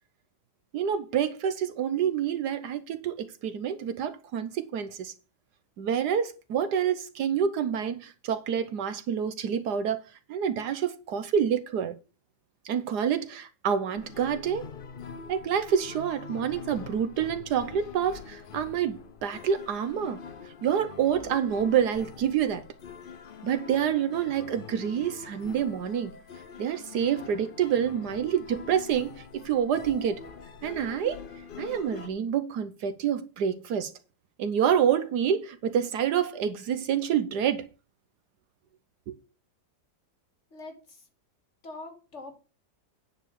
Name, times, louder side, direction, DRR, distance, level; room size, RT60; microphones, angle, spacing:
voice 1, 0.7-5.1 5.8-10.0 10.3-12.0 12.6-14.7 15.3-20.2 20.6-22.6 23.4-26.1 26.6-30.2 30.6-31.2 31.6-33.9 34.4-37.7 39.1-39.2, right 8 dB, 70° right, 1.3 m, -27 dB
sound 1, 13.9-32.1, left 6 dB, 75° left, 0.4 m, -44 dB
voice 2, 40.5-41.1 41.6-42.4, left 2 dB, 40° left, 1.9 m, -43 dB
9.8 x 4.6 x 6.9 m
omnidirectional pair, 2.0 m